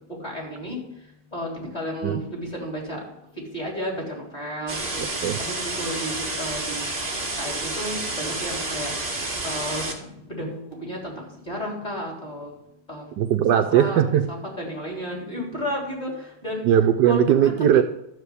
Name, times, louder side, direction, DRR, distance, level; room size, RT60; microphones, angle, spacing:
voice 1, 0.2-0.8 1.3-3.0 3.5-5.1 5.4-6.9 7.4-9.1 9.4-12.5 12.9-13.1 13.5-16.6 17.0-17.8, equal, 25° left, -2 dB, 3.8 m, -32 dB
sound 1, 4.7-9.9, right 2 dB, 25° right, 1.9 m, -30 dB
voice 2, 13.2-14.3 16.7-17.8, right 10 dB, 75° right, 8 dB, 1.3 m, -19 dB
12.5 x 4.9 x 8.3 m, 0.83 s
omnidirectional pair, 1.9 m